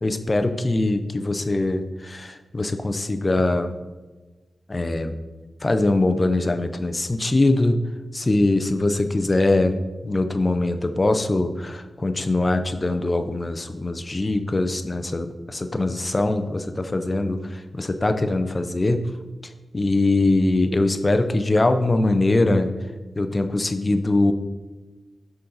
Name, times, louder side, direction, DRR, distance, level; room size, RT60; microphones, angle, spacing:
voice 1, 0.0-3.8 4.7-5.2 5.6-7.8 8.1-9.8 10.0-19.0 19.7-22.7 23.2-24.3, left 2 dB, 20° left, 8 dB, 0.4 m, -22 dB
6.9 x 3.9 x 3.9 m, 1.2 s
wide cardioid pair, 170°, 0 cm